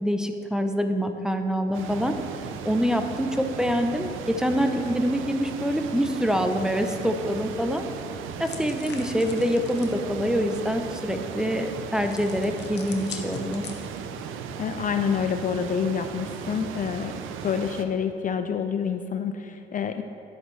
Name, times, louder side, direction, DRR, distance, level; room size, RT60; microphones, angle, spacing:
voice 1, 0.0-2.1 2.6-7.8 8.4-13.6, equal, 5° right, 6 dB, 0.6 m, -25 dB
sound 1, 1.7-17.8, right 7 dB, 90° right, 0.5 m, -37 dB
sound 2, 8.4-10.0 12.0-14.2, left 6 dB, 60° left, 0.9 m, -42 dB
voice 2, 14.6-20.0, left 7 dB, 40° left, 8 dB, 0.4 m, -28 dB
11.0 x 7.1 x 3.2 m, 2.6 s
cardioid pair, 90°, 20 cm